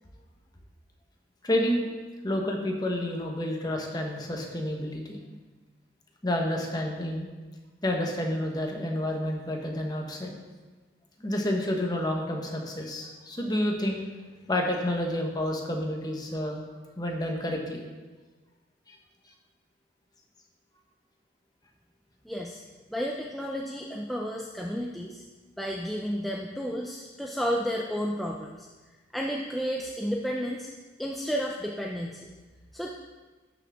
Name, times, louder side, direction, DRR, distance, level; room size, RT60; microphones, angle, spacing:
voice 1, 1.4-1.9 2.2-5.2 6.2-7.3 7.8-10.3 11.2-14.0 14.5-16.6 17.0-17.8 18.9-19.0, left 1 dB, 20° left, 1 dB, 1.1 m, -29 dB
voice 2, 22.2-22.6 22.9-25.2 25.6-28.7 29.1-30.7 31.0-32.3 32.7-32.9, equal, ahead, -2 dB, 0.4 m, -32 dB
12.0 x 6.1 x 3.5 m, 1.3 s
head